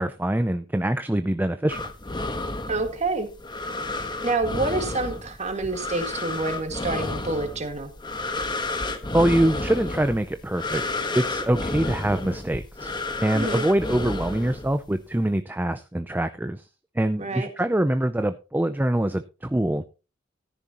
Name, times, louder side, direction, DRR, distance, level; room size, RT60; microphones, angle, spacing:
voice 1, 0.0-1.9 9.1-10.8 11.1-12.9 13.2-16.7 17.0-19.9, right 1 dB, 10° right, 10 dB, 0.5 m, -24 dB
breath in and out, 1.7-15.0, left 2 dB, 25° left, 1.3 m, -31 dB
voice 2, 2.7-3.3 4.2-7.9 13.3-13.6 17.2-17.5, right 3 dB, 35° right, 6 dB, 1.9 m, -27 dB
13.5 x 10.5 x 2.9 m, 0.30 s
head